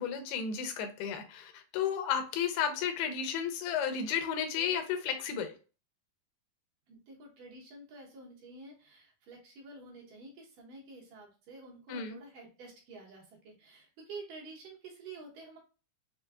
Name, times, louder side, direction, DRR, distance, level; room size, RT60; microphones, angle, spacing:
voice 1, 0.0-5.5 11.9-12.2, left 7 dB, 90° left, 7 dB, 2.7 m, -33 dB
voice 2, 6.9-15.6, right 3 dB, 70° right, -2 dB, 2.5 m, -49 dB
6.6 x 2.2 x 2.3 m, 0.35 s
omnidirectional pair, 4.3 m